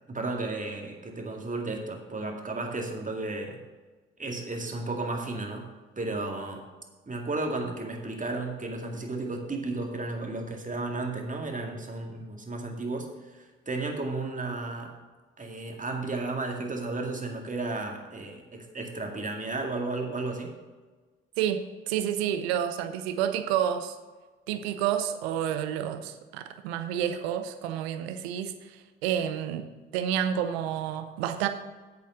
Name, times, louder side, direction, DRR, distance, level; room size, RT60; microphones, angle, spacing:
voice 1, 0.1-3.6 4.2-5.7 6.0-6.6 7.1-13.1 13.3-14.9 15.4-20.5, right 2 dB, 25° right, 2 dB, 2.2 m, -33 dB
voice 2, 21.4-24.0 24.5-29.7 29.9-31.5, right 10 dB, 80° right, 9 dB, 0.7 m, -29 dB
8.1 x 7.1 x 6.5 m, 1.3 s
hypercardioid pair, 50°, 31 cm